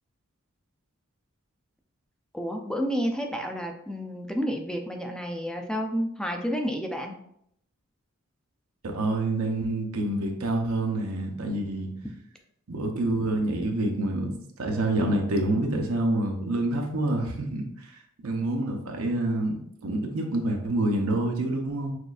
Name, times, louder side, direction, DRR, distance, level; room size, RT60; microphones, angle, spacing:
voice 1, 2.3-7.1, equal, 5° left, 2 dB, 0.4 m, -30 dB
voice 2, 8.8-11.9 12.7-17.9 18.2-21.9, right 1 dB, 90° right, 3 dB, 0.7 m, -27 dB
6.1 x 2.5 x 2.4 m, 0.71 s
head